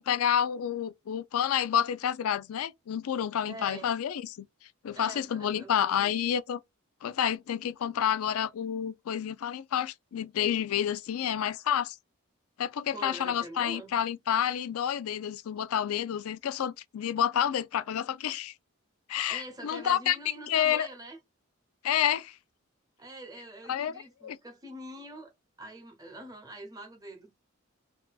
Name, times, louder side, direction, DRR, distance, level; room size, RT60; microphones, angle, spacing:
voice 1, 0.0-4.4 4.8-6.6 7.0-12.0 12.6-18.5 19.1-20.2 20.5-20.9 21.8-22.3 23.7-23.9 24.2-24.4, left 9 dB, 90° left, 0.4 m, -29 dB
voice 2, 3.5-3.9 4.9-6.1 12.9-14.0 19.3-21.2 23.0-25.3 25.6-27.4, right 1 dB, 20° right, 0.9 m, -45 dB
4.3 x 2.7 x 2.3 m
head